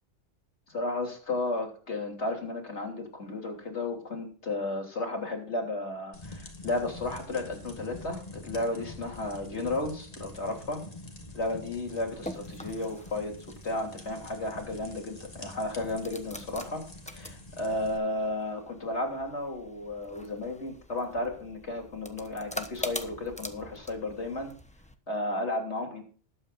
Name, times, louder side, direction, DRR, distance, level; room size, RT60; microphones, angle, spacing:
voice 1, 0.7-10.8 11.3-13.4 13.6-24.5 25.1-26.0, left 2 dB, 75° left, 2 dB, 3.5 m, -33 dB
sound 1, 6.1-18.0, left 2 dB, 35° left, 1.9 m, -46 dB
sound 2, 11.9-25.0, left 1 dB, 5° left, 0.9 m, -44 dB
20.0 x 8.8 x 2.6 m, 0.41 s
omnidirectional pair, 1.2 m